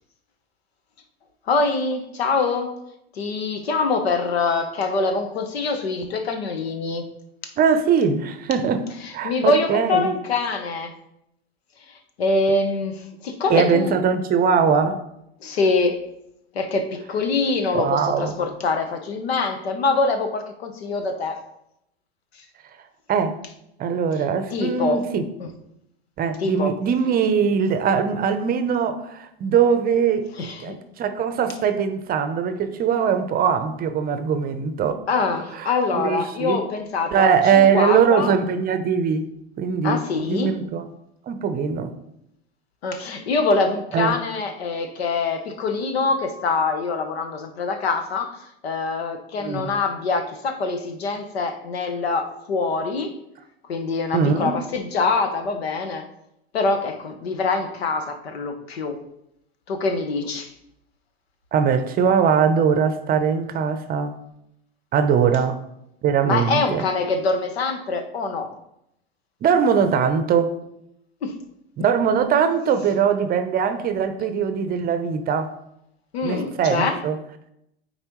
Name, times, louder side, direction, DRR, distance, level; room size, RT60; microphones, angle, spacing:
voice 1, 1.5-2.8 3.1-7.1 7.4-7.5 9.0-10.9 11.9-13.9 15.4-16.0 16.5-21.4 24.5-25.0 25.4-25.5 26.4-26.7 30.4-30.8 35.1-38.3 39.8-40.5 42.8-48.4 48.6-53.2 53.7-56.1 56.5-59.0 59.7-60.5 66.2-68.5 71.2-71.4 76.1-77.0, left 3 dB, 80° left, 1.0 m, -24 dB
voice 2, 7.6-8.8 9.1-10.1 13.5-15.0 17.7-18.3 23.1-23.4 23.8-25.3 26.2-30.3 30.6-35.0 35.6-36.6 37.1-39.3 39.6-40.0 40.3-40.9 41.3-41.9 43.9-44.2 49.4-49.7 54.1-54.6 61.5-64.2 64.9-65.6 66.0-66.8 69.4-70.6 71.8-75.5 76.2-77.2, right 6 dB, 30° right, 0.6 m, -21 dB
8.7 x 4.1 x 3.1 m
hypercardioid pair, 95°, 31 cm